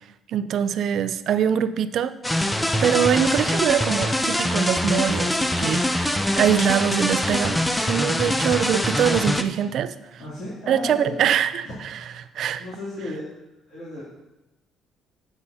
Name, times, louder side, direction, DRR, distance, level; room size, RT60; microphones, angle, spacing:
voice 1, 0.3-2.1 2.8-10.2 10.7-12.0 12.3-12.6, right 9 dB, 55° right, 12 dB, 0.4 m, -23 dB
sound 1, 2.2-9.4, left 1 dB, 5° left, 0.4 m, -23 dB
voice 2, 8.2-8.5 10.2-11.2 11.6-12.2 12.6-13.4 13.7-14.0, left 1 dB, 60° left, -10 dB, 2.7 m, -35 dB
9.7 x 8.0 x 2.7 m, 0.97 s
cardioid pair, 150°, 0 cm